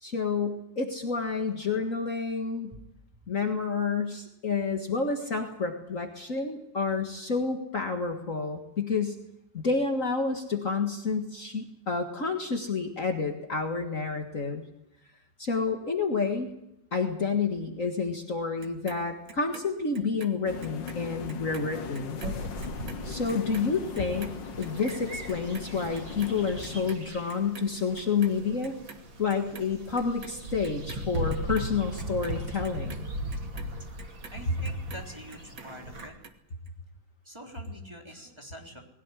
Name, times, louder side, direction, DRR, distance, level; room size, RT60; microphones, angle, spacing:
voice 1, 0.0-2.7 3.3-9.2 9.5-14.6 15.4-16.5 16.9-22.2 23.0-28.8 29.2-33.1, left 4 dB, 45° left, 4 dB, 2.0 m, -29 dB
Clock, 18.6-21.0 21.3-27.7 27.9-29.0 29.3-30.3 30.6-35.0 35.3-36.3 36.7-36.8, right 5 dB, 50° right, 2.1 m, -48 dB
sound 1, 20.5-27.0, left 6 dB, 75° left, 2.0 m, -40 dB
sound 2, 22.2-36.1, right 1 dB, 85° right, 3.8 m, -38 dB
voice 2, 34.3-36.2 37.2-38.8, equal, 15° right, 1 dB, 3.6 m, -45 dB
20.5 x 17.0 x 9.9 m, 0.84 s
omnidirectional pair, 2.0 m